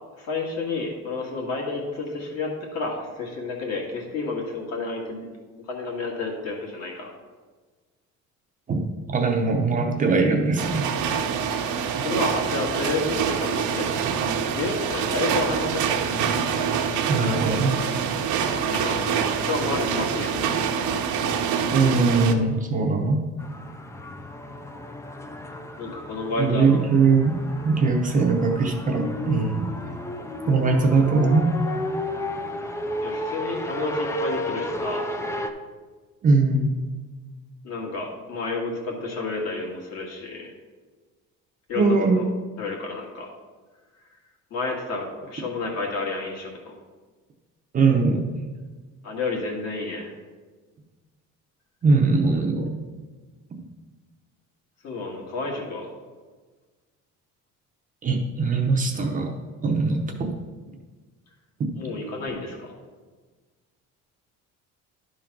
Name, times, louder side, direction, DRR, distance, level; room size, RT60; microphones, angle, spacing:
voice 1, 0.2-5.3 5.6-7.1 12.0-14.0 14.5-16.0 18.6-20.3 25.8-26.9 30.9-31.0 33.0-35.1 37.6-40.5 41.7-42.2 42.6-43.3 44.5-46.8 49.0-50.1 54.8-55.9 61.7-62.7, left 3 dB, 55° left, 0 dB, 1.9 m, -30 dB
voice 2, 8.7-11.0 17.1-17.7 21.7-23.2 26.4-27.4 27.6-29.7 30.5-31.5 36.2-36.8 41.8-42.2 47.7-48.2 51.8-52.7 58.0-59.3 59.6-60.3, right 4 dB, 25° right, 1 dB, 0.7 m, -21 dB
sound 1, 10.6-22.3, right 7 dB, 70° right, 0.8 m, -25 dB
sound 2, 23.4-35.5, left 1 dB, 10° left, 0.3 m, -33 dB
11.0 x 3.8 x 5.9 m, 1.4 s
cardioid pair, 180°, 31 cm